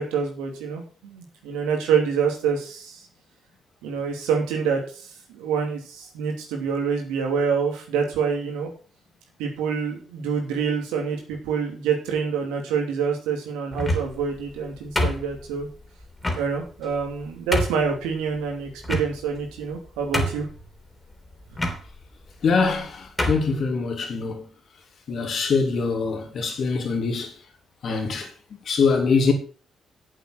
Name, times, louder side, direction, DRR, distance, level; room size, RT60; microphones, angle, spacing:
voice 1, 0.0-3.0 3.8-8.7 9.4-15.7 16.4-20.5, right 6 dB, 85° right, 2.9 m, -26 dB
sound 1, 13.7-14.2 15.0-15.6 16.2-16.4 17.0-17.1 17.5-17.9 18.8-19.4 19.8-19.9 20.1-20.6 21.5-21.8 22.6-22.8 23.2-23.5, left 1 dB, 20° left, 3.6 m, -25 dB
voice 2, 22.4-24.5 25.1-27.3 27.8-28.3 28.7-29.3, left 4 dB, 60° left, 3.3 m, -23 dB
8.2 x 7.7 x 6.3 m
hypercardioid pair, 50°, 0 cm